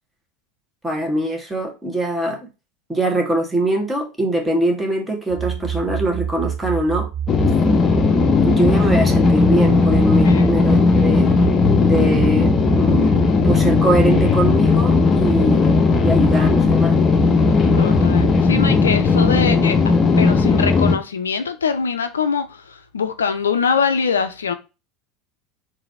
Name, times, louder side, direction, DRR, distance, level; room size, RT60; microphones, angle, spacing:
voice 1, 0.8-2.5 2.9-7.1 8.4-11.3 11.8-17.0, right 1 dB, 10° right, 1.4 m, -22 dB
sound 1, 5.3-18.3, right 8 dB, 35° right, 0.5 m, -27 dB
sound 2, 7.3-21.0, left 4 dB, 30° left, 0.7 m, -16 dB
voice 2, 17.8-19.8 20.2-24.5, left 6 dB, 80° left, 0.4 m, -23 dB
3.9 x 2.7 x 4.1 m
figure-of-eight pair, 75°, 0 cm